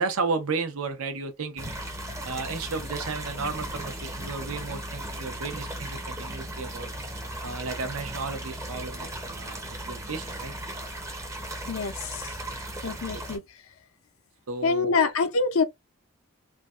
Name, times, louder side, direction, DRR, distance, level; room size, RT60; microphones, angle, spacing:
voice 1, 0.0-1.7 2.2-6.9 7.4-10.5 13.1-13.2 14.5-15.0, right 4 dB, 85° right, 0.8 m, -33 dB
sound 1, 1.6-13.4, right 1 dB, 15° right, 0.6 m, -36 dB
voice 2, 11.7-12.4 12.8-13.4 14.6-15.6, left 4 dB, 75° left, 0.5 m, -25 dB
3.3 x 2.2 x 2.4 m
head